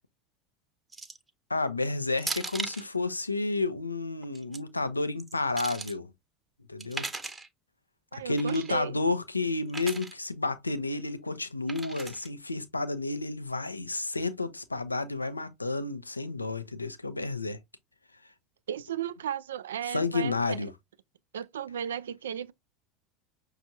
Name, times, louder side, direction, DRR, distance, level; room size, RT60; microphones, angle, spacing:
sound 1, 0.9-1.3 2.2-2.9 4.2-4.6 5.2-5.9 6.8-7.5 8.4-8.7 9.7-10.1 11.7-12.3, right 3 dB, 15° right, 0.8 m, -37 dB
voice 1, 1.5-6.1 6.7-7.1 8.1-17.6 19.9-20.7, left 3 dB, 85° left, 0.4 m, -31 dB
voice 2, 8.1-8.9 18.7-20.6 21.3-22.5, right 9 dB, 70° right, 0.3 m, -35 dB
6.0 x 2.4 x 2.6 m
figure-of-eight pair, 75°, 0 cm